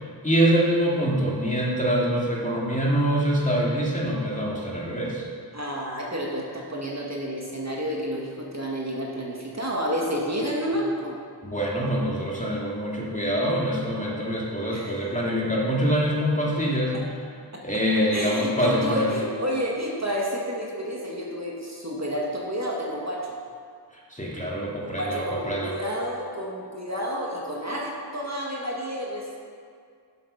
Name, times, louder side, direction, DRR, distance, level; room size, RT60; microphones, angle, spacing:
voice 1, 0.2-5.2 11.4-17.0 17.6-19.1 24.1-25.7, equal, 20° left, -5 dB, 2.4 m, -25 dB
voice 2, 5.5-11.2 14.7-15.0 16.9-17.0 17.5-17.7 18.1-23.3 24.7-29.4, equal, 40° right, -3 dB, 1.6 m, -30 dB
10.5 x 7.6 x 5.6 m, 2.2 s
wide cardioid pair, 55°, 42 cm